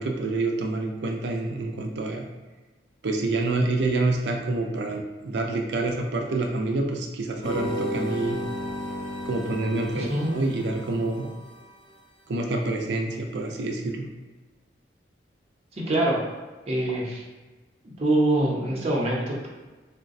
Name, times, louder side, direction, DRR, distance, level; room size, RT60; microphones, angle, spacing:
voice 1, 0.0-2.2 3.0-8.4 9.3-11.3 12.3-14.1, right 2 dB, 70° right, 2 dB, 0.5 m, -27 dB
sound 1, 7.4-11.7, equal, 30° left, 0.4 m, -33 dB
voice 2, 9.9-10.3 15.9-16.2 16.7-17.2 18.0-19.5, right 1 dB, 35° right, -4 dB, 0.7 m, -24 dB
3.9 x 2.1 x 2.6 m, 1.2 s
head